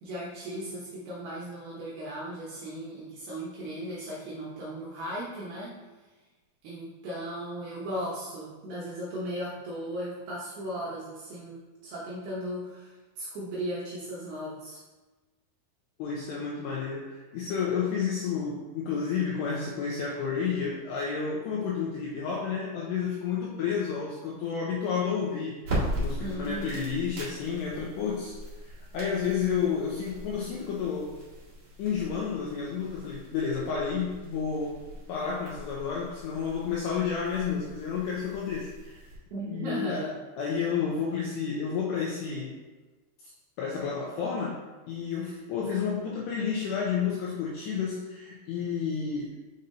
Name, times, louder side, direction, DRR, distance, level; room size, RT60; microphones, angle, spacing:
voice 1, 0.0-5.8 6.6-14.8 26.2-26.8 39.3-40.1, right 1 dB, 75° right, -6 dB, 2.4 m, -36 dB
voice 2, 16.0-28.3 28.6-31.1 31.8-34.7 35.1-39.1 39.5-42.6 43.6-44.5 44.9-49.3, left 6 dB, 90° left, -4 dB, 2.4 m, -31 dB
sound 1, 25.6-39.1, equal, 60° right, 1.4 m, -39 dB
6.9 x 5.4 x 2.6 m, 1.2 s
omnidirectional pair, 5.7 m